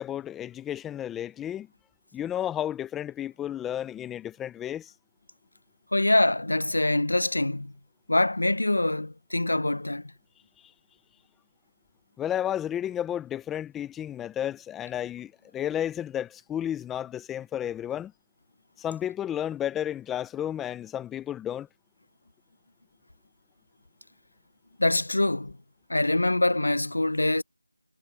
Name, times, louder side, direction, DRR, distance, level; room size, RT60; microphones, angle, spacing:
voice 1, 0.0-1.7 2.1-4.9 12.2-18.1 18.8-21.7, left 10 dB, 5° left, 0.5 m, -32 dB
voice 2, 5.9-7.7 8.1-10.0 24.8-25.5 25.9-27.4, left 2 dB, 85° left, 0.7 m, -24 dB
figure-of-eight pair, 180°, 0 cm